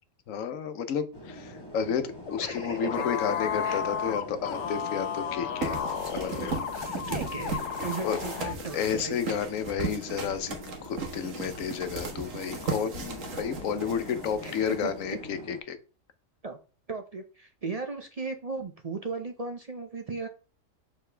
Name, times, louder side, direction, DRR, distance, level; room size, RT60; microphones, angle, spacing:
voice 1, 0.3-5.8 6.1-6.9 8.0-8.2 8.7-15.8, left 7 dB, 85° left, 10 dB, 1.2 m, -31 dB
sound 1, 1.1-15.6, left 1 dB, 20° left, 1.5 m, -44 dB
sound 2, 2.3-8.5, left 8 dB, 65° left, 1.0 m, -33 dB
voice 2, 2.4-2.8 3.6-3.8 6.9-9.1 14.4-15.2 16.4-16.6 16.9-20.3, right 4 dB, 40° right, 5 dB, 0.6 m, -37 dB
sound 3, 5.6-15.1, right 4 dB, 85° right, 1.6 m, -37 dB
6.7 x 4.1 x 3.3 m, 0.36 s
omnidirectional pair, 1.3 m